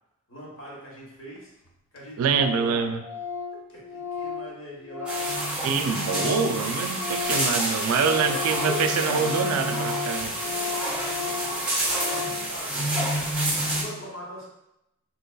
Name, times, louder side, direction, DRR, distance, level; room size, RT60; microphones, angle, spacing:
voice 1, 0.3-1.5 1.9-2.8 3.7-5.6 8.0-9.3 10.4-13.2 13.6-14.4, equal, 60° left, -4 dB, 1.2 m, -41 dB
Organ, 1.4-1.5 1.7-1.8 2.0-2.1 2.3-2.7 3.0-6.6 6.8-12.5, left 6 dB, 90° left, 0.5 m, -34 dB
voice 2, 2.2-3.0 5.6-10.4, right 5 dB, 80° right, 8 dB, 0.3 m, -25 dB
sound 1, 5.1-13.8, right 1 dB, 5° right, 0.6 m, -28 dB
3.9 x 2.9 x 2.2 m, 0.86 s
head